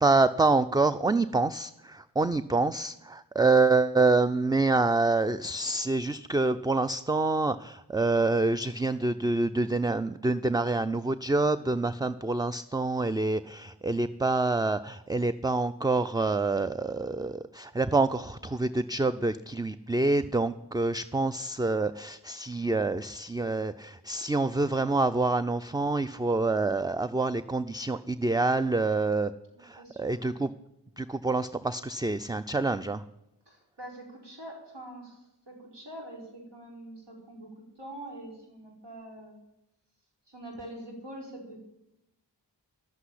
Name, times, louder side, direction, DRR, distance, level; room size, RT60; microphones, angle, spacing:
voice 1, 0.0-29.3 29.6-30.5 31.0-33.0, right 3 dB, 10° right, 12 dB, 0.4 m, -27 dB
voice 2, 29.5-30.5 33.4-37.5 37.8-39.4 40.3-41.6, right 1 dB, 70° right, -1 dB, 4.9 m, -45 dB
11.5 x 8.2 x 9.9 m, 0.85 s
wide cardioid pair, 45°, 43 cm